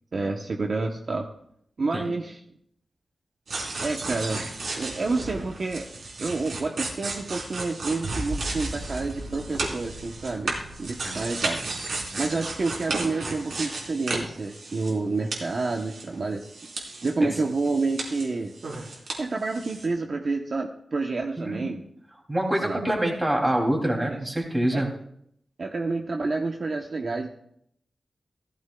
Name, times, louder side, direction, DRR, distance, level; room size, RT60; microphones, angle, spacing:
voice 1, 0.1-1.3 1.8-2.4 3.8-4.4 4.8-5.9 6.2-10.5 10.8-11.6 12.2-16.5 17.0-18.5 19.2-21.8 22.6-22.8 24.0-24.2 24.7-24.8 25.6-27.3, right 3 dB, 50° right, 2 dB, 0.9 m, -29 dB
sound 1, 3.5-15.1 15.3-17.1 17.5-19.2 19.5-19.9, right 2 dB, 80° right, 3.6 m, -33 dB
voice 2, 22.3-24.9, right 1 dB, 15° right, 1 dB, 2.8 m, -26 dB
16.5 x 14.0 x 2.3 m, 0.70 s
wide cardioid pair, 135°, 0 cm